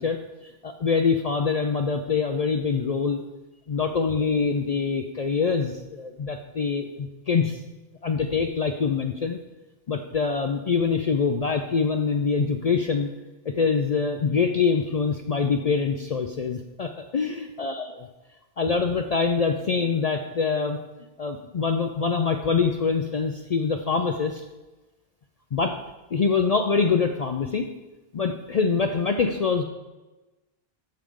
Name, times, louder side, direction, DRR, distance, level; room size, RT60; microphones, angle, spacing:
voice 1, 0.0-3.2 3.7-7.6 8.0-9.4 9.9-13.1 13.5-17.9 18.6-20.8 21.2-24.4 25.5-25.8 26.1-27.7 28.1-29.6, left 5 dB, 50° left, 6 dB, 0.5 m, -24 dB
13.5 x 5.0 x 3.7 m, 1.1 s
omnidirectional pair, 1.1 m